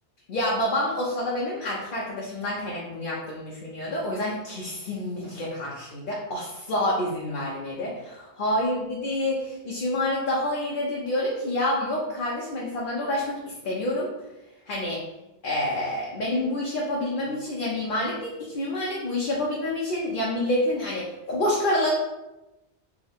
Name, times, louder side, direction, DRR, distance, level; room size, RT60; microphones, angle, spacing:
voice 1, 0.3-14.1 14.7-15.0 15.4-21.9, left 1 dB, 50° left, -5 dB, 0.8 m, -28 dB
3.5 x 3.1 x 3.5 m, 0.99 s
omnidirectional pair, 1.2 m